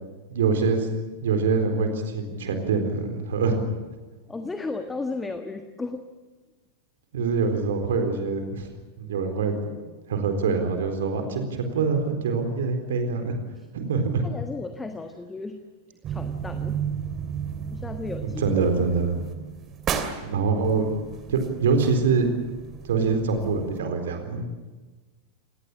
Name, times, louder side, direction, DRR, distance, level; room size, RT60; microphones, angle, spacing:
voice 1, 0.3-0.9 1.2-3.6 7.1-8.7 9.0-9.5 10.1-13.4 13.7-14.3 18.4-19.2 20.2-20.9 21.3-22.3 22.9-24.5, right 4 dB, 60° right, 6 dB, 4.0 m, -24 dB
voice 2, 4.3-6.1 13.6-13.7 14.2-15.6 16.0-16.8 17.7-18.4, left 3 dB, 10° left, 7 dB, 1.5 m, -34 dB
sound 1, 16.0-23.8, right 7 dB, 30° right, 2.8 m, -34 dB
28.5 x 19.0 x 7.4 m, 1.2 s
figure-of-eight pair, 90°, 0 cm